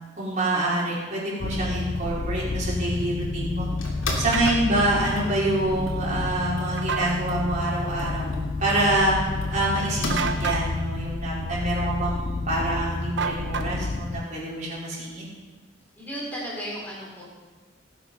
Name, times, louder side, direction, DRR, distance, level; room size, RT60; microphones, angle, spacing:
voice 1, 0.2-3.7 4.2-8.3 8.6-9.1 9.5-15.2, right 1 dB, 40° right, -6 dB, 4.7 m, -26 dB
sound 1, 1.4-14.3, left 3 dB, 30° left, 0.3 m, -31 dB
sound 2, 2.8-10.6, left 3 dB, 80° left, 3.0 m, -33 dB
sound 3, 4.3-4.6 6.8-7.2 10.1-10.7 13.2-14.0, right 6 dB, 60° right, 1.0 m, -29 dB
voice 2, 15.9-17.2, equal, 10° left, -6 dB, 4.9 m, -35 dB
18.0 x 8.9 x 5.5 m, 1.3 s
head